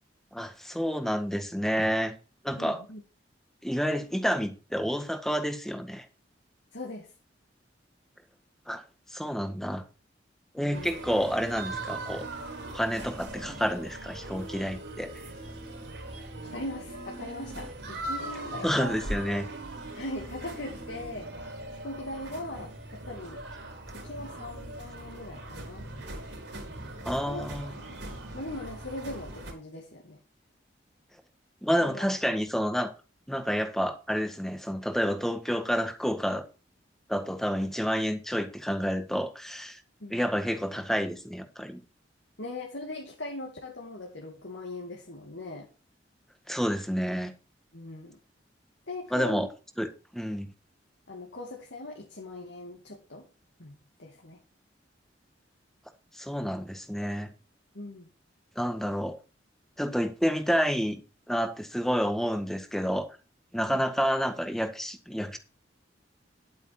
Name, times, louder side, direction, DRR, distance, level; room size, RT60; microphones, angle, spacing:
voice 1, 0.3-2.1 2.4-2.8 3.6-6.1 8.7-8.8 9.1-9.8 10.5-12.3 12.7-15.1 18.6-19.5 27.0-27.7 31.6-32.9 33.3-36.4 37.1-39.8 40.1-41.8 46.5-47.3 49.1-49.5 49.8-49.9 50.1-50.5 56.2-57.3 58.6-59.2 59.8-61.0 61.3-63.1 63.5-65.4, equal, ahead, 1.6 m, -29 dB
voice 2, 2.6-3.0 6.7-7.1 10.6-10.9 16.4-19.0 20.0-23.4 23.9-25.9 27.3-27.4 27.8-28.0 28.3-30.2 31.8-32.0 40.0-40.2 42.4-45.7 47.7-48.2 48.9-49.5 51.1-53.3 53.6-54.4 57.7-58.1 63.7-63.8, left 1 dB, 75° left, 2.6 m, -40 dB
sound 1, 10.7-29.5, right 1 dB, 70° right, 4.2 m, -40 dB
11.0 x 8.5 x 4.4 m
head